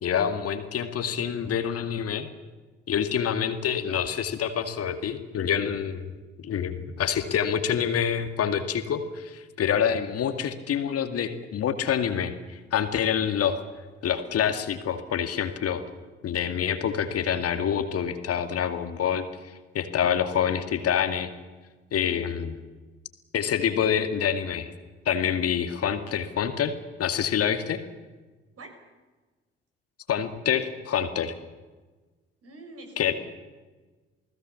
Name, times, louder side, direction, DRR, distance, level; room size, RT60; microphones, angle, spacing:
voice 1, 0.0-2.3 2.9-6.1 6.4-13.6 14.0-15.8 16.2-19.3 19.7-21.3 21.9-22.6 23.3-24.7 25.1-26.7 27.0-27.8 30.1-31.4 33.0-33.1, left 8 dB, 50° left, 9 dB, 2.1 m, -26 dB
voice 2, 32.4-33.1, right 2 dB, 50° right, 4 dB, 6.4 m, -45 dB
29.0 x 19.5 x 7.1 m, 1.3 s
figure-of-eight pair, 45°, 31 cm